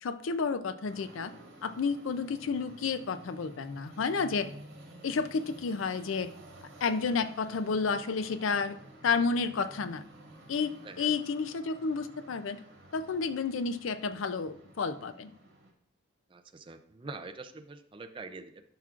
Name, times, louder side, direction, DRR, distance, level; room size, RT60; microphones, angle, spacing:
voice 1, 0.0-1.3 1.6-4.5 5.0-6.3 6.8-8.8 9.0-10.0 10.5-12.6 12.9-15.3, left 5 dB, 75° left, 12 dB, 0.5 m, -31 dB
sound 1, 0.8-15.7, right 1 dB, 60° right, 2.3 m, -52 dB
voice 2, 16.3-18.6, right 3 dB, 25° right, 8 dB, 0.5 m, -45 dB
11.0 x 5.9 x 2.4 m, 0.67 s
head